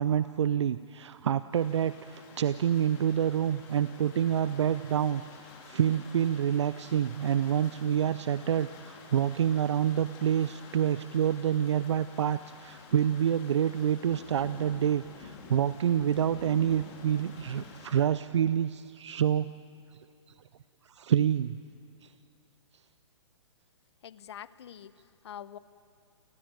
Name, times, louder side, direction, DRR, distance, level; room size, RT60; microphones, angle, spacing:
voice 1, 0.0-5.2 5.7-19.5 21.0-21.6 22.0-22.1, right 9 dB, 70° right, 14 dB, 0.6 m, -27 dB
sound 1, 1.5-18.0, left 5 dB, 35° left, 3.7 m, -50 dB
voice 2, 24.0-25.6, left 10 dB, 60° left, 17 dB, 0.9 m, -45 dB
28.5 x 15.5 x 9.1 m, 2.5 s
hypercardioid pair, 135°, 16 cm